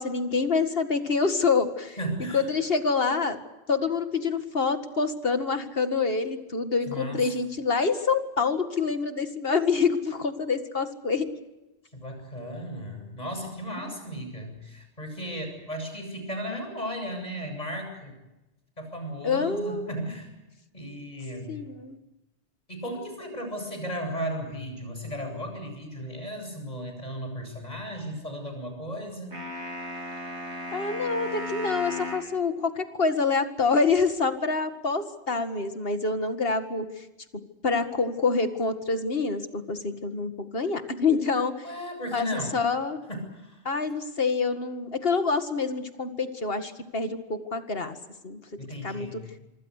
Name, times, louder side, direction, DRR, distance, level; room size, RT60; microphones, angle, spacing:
voice 1, 0.0-2.0 2.3-3.4 3.7-11.3 13.8-13.9 19.2-19.9 21.5-22.0 30.7-37.1 37.6-41.5 42.1-43.0 43.7-48.0 48.2-48.4 48.8-49.1, left 4 dB, 55° left, 8 dB, 2.2 m, -26 dB
voice 2, 2.0-2.4 6.9-7.3 11.9-18.2 18.8-20.3 20.7-21.6 22.7-29.4 41.6-42.6 43.1-43.6 48.6-49.2, equal, 35° left, 4 dB, 8.2 m, -35 dB
sound 1, 29.3-32.3, left 1 dB, 75° right, 4.8 m, -35 dB
26.0 x 25.5 x 6.6 m, 1.0 s
omnidirectional pair, 1.1 m